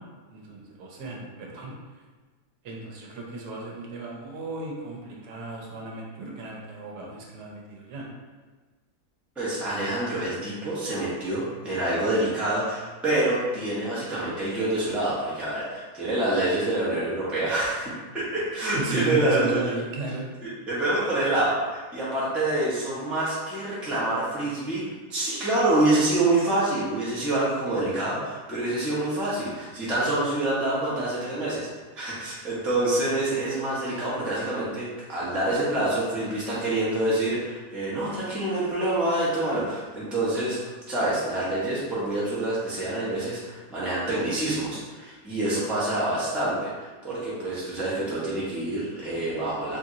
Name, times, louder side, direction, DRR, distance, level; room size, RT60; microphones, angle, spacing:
voice 1, 0.3-1.7 2.6-8.1 18.7-20.3, right 2 dB, 75° right, -2 dB, 1.2 m, -34 dB
voice 2, 9.4-19.7 20.4-24.8 25.1-31.7 31.9-40.6 40.9-49.8, right 2 dB, ahead, -8 dB, 0.5 m, -26 dB
2.9 x 2.8 x 3.7 m, 1.3 s
omnidirectional pair, 1.7 m